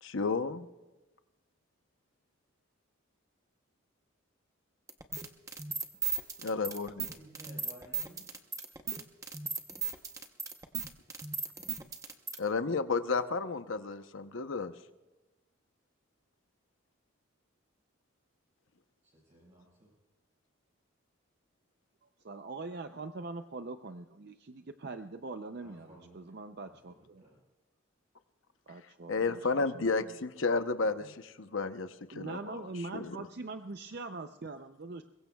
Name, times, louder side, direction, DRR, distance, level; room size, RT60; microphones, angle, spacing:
voice 1, 0.0-0.7 6.4-7.1 12.4-14.7 29.1-32.6 32.9-33.2, left 4 dB, 70° left, 9 dB, 0.8 m, -32 dB
sound 1, 4.9-12.4, right 6 dB, 15° right, 0.8 m, -36 dB
voice 2, 7.1-8.2 19.1-19.9 25.6-26.2 26.6-27.4, right 1 dB, 35° right, -5 dB, 5.2 m, -55 dB
voice 3, 22.2-27.2 28.7-30.1 32.1-35.0, right 3 dB, 50° right, 8 dB, 0.5 m, -43 dB
22.5 x 21.5 x 2.3 m, 1.1 s
head